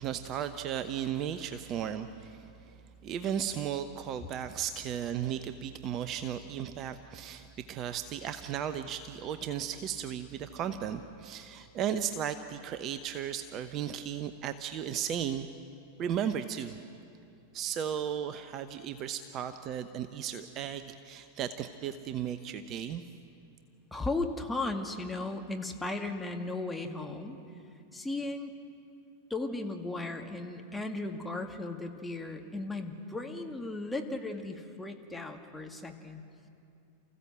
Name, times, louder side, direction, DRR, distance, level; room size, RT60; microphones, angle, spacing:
voice 1, 0.0-2.4 3.0-15.5 16.0-16.8 17.5-23.0, right 9 dB, 35° right, 10 dB, 0.9 m, -35 dB
voice 2, 23.9-27.4 27.9-28.5 29.3-36.2, left 2 dB, 5° left, 3 dB, 2.0 m, -36 dB
29.5 x 15.5 x 7.7 m, 2.6 s
figure-of-eight pair, 90°, 0 cm